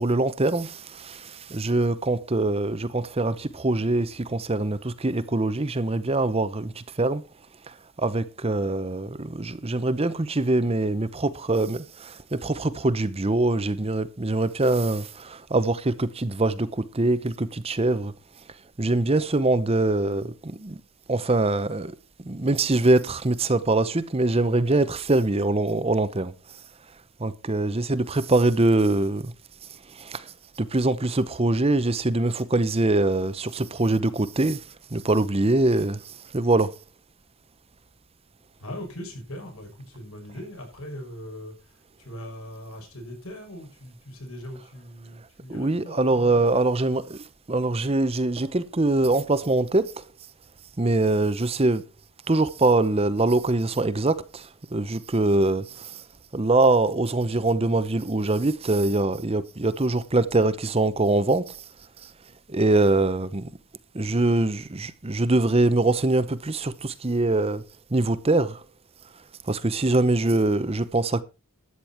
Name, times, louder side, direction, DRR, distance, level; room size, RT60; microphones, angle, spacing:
voice 1, 0.0-7.2 7.7-18.1 18.8-20.8 21.1-22.0 22.2-26.3 27.2-29.3 29.9-34.6 34.9-36.7 45.5-50.0 50.8-51.8 52.3-56.0 56.3-61.6 62.0-62.1 62.5-63.5 63.9-67.6 67.9-68.6 69.5-71.2, right 2 dB, 25° right, 0.8 m, -23 dB
voice 2, 38.6-46.4, equal, 85° left, 6.3 m, -40 dB
13.0 x 9.0 x 4.4 m
head